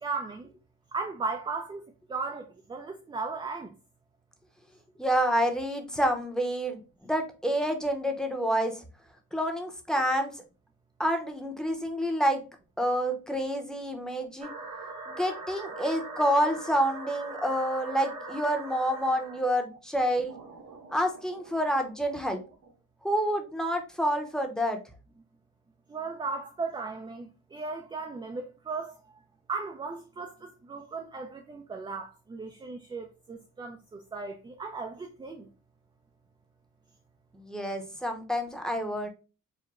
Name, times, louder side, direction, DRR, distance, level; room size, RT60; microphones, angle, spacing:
voice 1, 0.0-0.5 0.9-3.7 25.9-29.0 29.5-35.5, right 4 dB, 15° right, 0.3 m, -36 dB
voice 2, 5.0-8.8 9.3-10.3 11.0-12.4 12.8-14.5 15.1-20.3 20.9-22.4 23.0-24.8 37.3-39.1, equal, ahead, 0.7 m, -28 dB
sound 1, 14.4-19.5 20.3-22.7, right 2 dB, 75° right, 1.3 m, -42 dB
4.7 x 2.1 x 3.5 m
cardioid pair, 125°, 32 cm